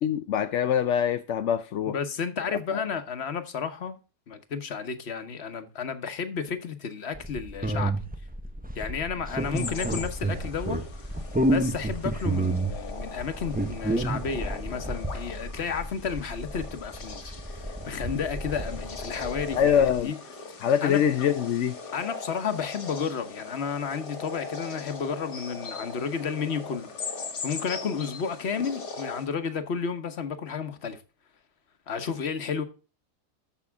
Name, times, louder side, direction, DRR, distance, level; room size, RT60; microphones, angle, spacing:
voice 1, 0.0-2.0 2.5-2.8 19.6-20.1 20.6-21.8, left 8 dB, 65° left, 0.7 m, -24 dB
voice 2, 1.9-4.0 4.3-7.9 8.7-10.8 11.4-20.2 20.8-21.0 21.9-26.9 27.4-31.0 31.9-32.6, left 6 dB, 45° left, 1.2 m, -32 dB
sound 1, 7.1-20.0, right 1 dB, 10° right, 0.5 m, -31 dB
sound 2, 9.4-29.3, left 4 dB, 80° left, 2.3 m, -40 dB
13.5 x 5.7 x 3.4 m
omnidirectional pair, 1.8 m